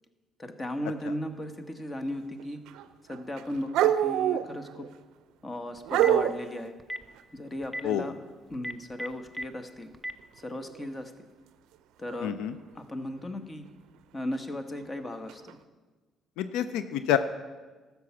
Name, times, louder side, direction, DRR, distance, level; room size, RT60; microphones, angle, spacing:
voice 1, 0.4-2.6 3.1-4.9 5.4-6.8 7.3-8.1 8.5-9.9 10.4-11.3 12.0-12.3 12.7-13.6 14.1-15.6, left 1 dB, 25° left, 7 dB, 1.2 m, -36 dB
sound 1, 2.4-2.8 3.1-4.9 5.9-6.5 10.6-10.9 12.1-12.2 14.3-14.4 15.3-15.5, right 11 dB, 85° right, 0.4 m, -26 dB
Telephone, 5.8-6.2 6.8-7.0 7.6-7.8 8.5-9.4 9.9-10.1, equal, 5° left, 0.6 m, -34 dB
voice 2, 12.2-12.5 16.4-17.2, left 10 dB, 90° left, 11 dB, 0.4 m, -27 dB
12.5 x 7.1 x 5.9 m, 1.3 s
cardioid pair, 85°, 0 cm